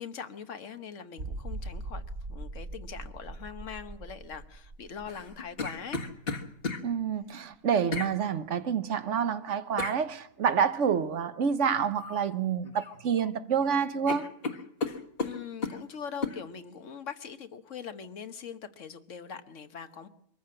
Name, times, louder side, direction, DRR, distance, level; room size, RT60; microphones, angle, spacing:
voice 1, 0.0-2.0 2.3-6.0 15.2-20.1, left 7 dB, 65° left, 1.4 m, -42 dB
sound 1, 1.2-6.6 6.9-7.0 7.5-7.6, right 2 dB, 40° right, 1.2 m, -41 dB
sound 2, 5.1-6.8 7.9-8.1 9.8-10.0 12.0-12.3 12.6-13.3 13.6-13.7 14.1-15.8 16.2-16.4, left 4 dB, 45° left, 1.6 m, -34 dB
voice 2, 6.8-14.3, right 7 dB, 65° right, 1.3 m, -28 dB
23.5 x 14.5 x 7.7 m
omnidirectional pair, 1.4 m